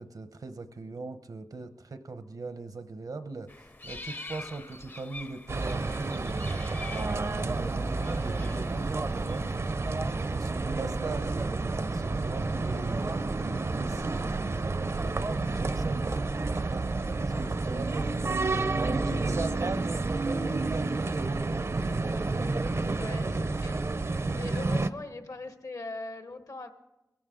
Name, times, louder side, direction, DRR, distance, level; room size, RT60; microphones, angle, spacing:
voice 1, 0.0-9.3 9.9-16.1 16.5-18.1 18.7-22.2, right 3 dB, 75° right, 10 dB, 0.8 m, -39 dB
sound 1, 3.5-9.6, left 2 dB, 35° left, 0.6 m, -45 dB
sound 2, 5.5-24.9, right 3 dB, 50° right, 0.5 m, -30 dB
voice 2, 22.9-26.7, left 2 dB, 65° left, 8 dB, 1.2 m, -41 dB
22.5 x 16.0 x 3.8 m, 1.0 s
wide cardioid pair, 85°, 6 cm